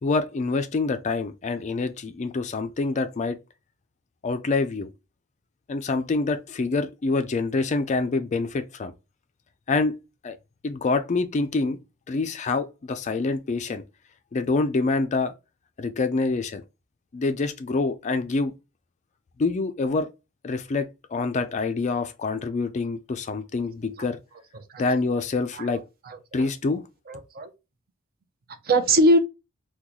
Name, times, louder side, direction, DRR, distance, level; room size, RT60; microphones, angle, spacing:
voice 1, 0.0-3.4 4.2-4.9 5.7-8.9 9.7-10.0 10.2-10.4 10.6-11.8 12.1-13.8 14.3-15.3 15.8-16.6 17.1-18.5 19.4-20.1 20.4-24.2 24.8-25.8 26.3-26.8, left 3 dB, 35° left, 0.3 m, -26 dB
voice 2, 25.6-26.5 27.1-27.5 28.6-29.2, right 1 dB, 45° right, 0.6 m, -22 dB
2.9 x 2.2 x 3.7 m
head